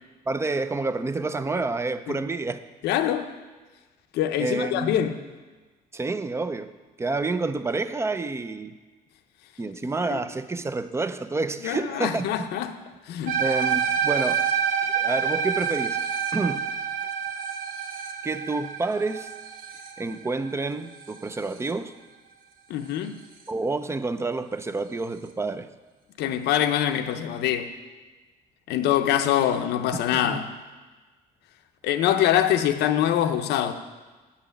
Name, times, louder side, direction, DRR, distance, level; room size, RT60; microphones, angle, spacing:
voice 1, 0.3-2.6 4.4-5.0 5.9-6.7 7.0-8.7 9.6-12.3 13.4-14.5 14.9-16.0 16.3-16.7 18.2-19.3 20.0-21.9 23.5-25.7 30.1-30.5, right 3 dB, 15° right, 0.5 m, -28 dB
voice 2, 2.8-3.3 4.1-5.2 10.1-10.2 11.6-12.8 13.1-13.4 22.7-23.2 26.2-27.7 28.7-30.5 31.8-33.7, left 11 dB, 80° left, 0.7 m, -24 dB
sound 1, 13.3-21.7, right 7 dB, 55° right, 1.1 m, -28 dB
8.4 x 5.8 x 7.1 m
cardioid pair, 110°, 17 cm